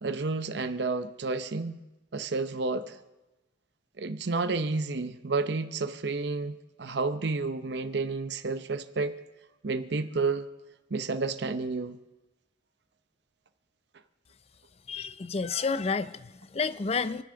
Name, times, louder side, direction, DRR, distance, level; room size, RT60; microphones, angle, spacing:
voice 1, 0.0-1.8 2.1-3.0 4.0-9.1 9.6-10.5 10.9-12.0, right 3 dB, 60° right, 0.7 m, -30 dB
voice 2, 14.9-17.2, left 4 dB, 35° left, 0.5 m, -30 dB
27.5 x 10.0 x 3.8 m
head